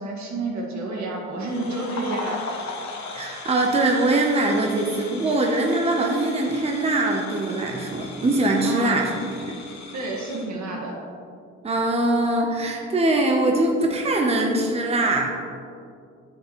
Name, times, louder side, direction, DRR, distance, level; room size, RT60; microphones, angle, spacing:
voice 1, 0.0-2.5 8.6-9.0 9.9-10.9, right 2 dB, 70° right, -1 dB, 1.9 m, -29 dB
sound 1, 1.4-10.5, left 4 dB, 65° left, 1.2 m, -38 dB
voice 2, 3.1-9.6 11.6-15.3, right 2 dB, 20° right, 1 dB, 0.8 m, -22 dB
9.3 x 7.4 x 3.1 m, 2.4 s
cardioid pair, 90°, 30 cm